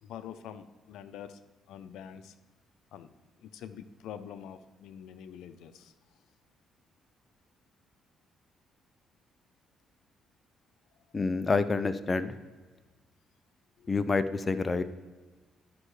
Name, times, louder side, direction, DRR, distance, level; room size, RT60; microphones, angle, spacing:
voice 1, 0.0-1.4 1.7-2.4 2.9-3.1 3.4-5.9 13.8-13.9, left 9 dB, 85° left, 11 dB, 0.5 m, -45 dB
voice 2, 11.1-12.3 13.9-14.8, left 4 dB, 30° left, 11 dB, 0.5 m, -28 dB
12.0 x 5.4 x 3.2 m, 1.3 s
cardioid pair, 90°, 0 cm